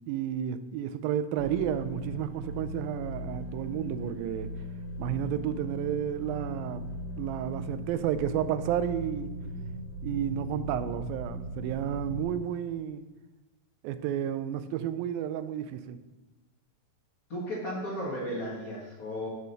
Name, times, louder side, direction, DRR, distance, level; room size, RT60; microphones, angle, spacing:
voice 1, 0.1-4.5 5.0-6.9 7.2-9.4 10.0-13.1 13.8-16.0, right 10 dB, 85° right, 11 dB, 2.3 m, -31 dB
sound 1, 1.4-12.2, equal, 40° left, 1.7 m, -38 dB
voice 2, 17.3-19.3, equal, 55° left, -4 dB, 0.9 m, -34 dB
8.3 x 4.1 x 6.7 m, 1.1 s
omnidirectional pair, 4.1 m